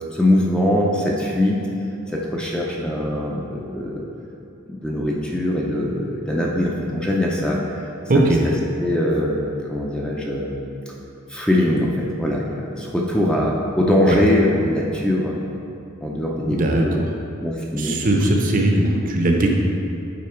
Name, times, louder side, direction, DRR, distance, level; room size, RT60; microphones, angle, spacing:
voice 1, 0.1-1.6 2.1-4.0 4.7-7.9 8.1-8.5 8.8-10.6 10.9-11.0 11.3-15.4 16.0-17.0 17.4-18.3, left 1 dB, 5° left, -3 dB, 0.5 m, -22 dB
voice 2, 8.1-8.4 14.0-14.2 16.5-17.1 17.8-19.5, right 1 dB, 40° right, 1 dB, 0.7 m, -19 dB
8.6 x 3.9 x 4.4 m, 2.9 s
head